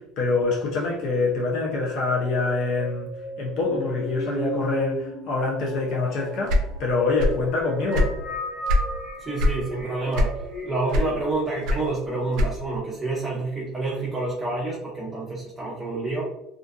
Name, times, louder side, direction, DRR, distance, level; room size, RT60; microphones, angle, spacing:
voice 1, 0.0-3.1 3.4-8.2, left 3 dB, 60° left, -2 dB, 0.6 m, -25 dB
sound 1, 1.7-11.2, equal, 20° left, 1.0 m, -36 dB
sound 2, 6.5-7.5 7.8-8.9 9.4-9.6 10.1-10.6 10.9-12.8, left 1 dB, 65° right, 0.5 m, -22 dB
voice 2, 9.2-16.2, right 3 dB, 20° right, -5 dB, 0.6 m, -28 dB
2.5 x 2.2 x 2.5 m, 0.86 s
supercardioid pair, 105°, 0 cm